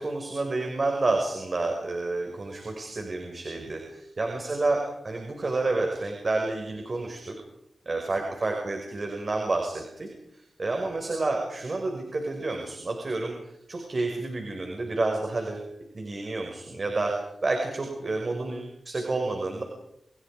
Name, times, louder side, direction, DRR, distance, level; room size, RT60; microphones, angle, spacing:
voice 1, 0.0-7.3 7.9-15.7 15.9-19.6, right 2 dB, 45° right, 2 dB, 5.6 m, -29 dB
29.5 x 28.5 x 5.1 m, 0.81 s
wide cardioid pair, 75°, 0 cm